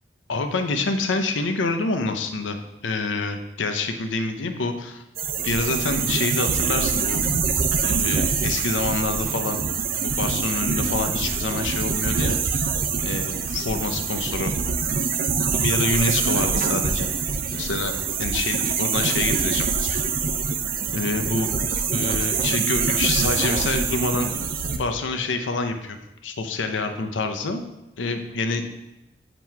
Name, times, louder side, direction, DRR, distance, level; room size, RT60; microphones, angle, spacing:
voice 1, 0.3-2.6 2.8-5.0 5.4-7.2 7.8-9.6 10.0-12.7 13.0-14.5 15.5-17.1 17.5-20.1 20.9-21.5 21.8-24.5 24.8-27.6 28.0-28.6, left 3 dB, 90° left, 6 dB, 0.6 m, -27 dB
sound 1, 5.2-24.8, right 5 dB, 50° right, 0.5 m, -24 dB
7.5 x 3.0 x 4.6 m, 0.96 s
head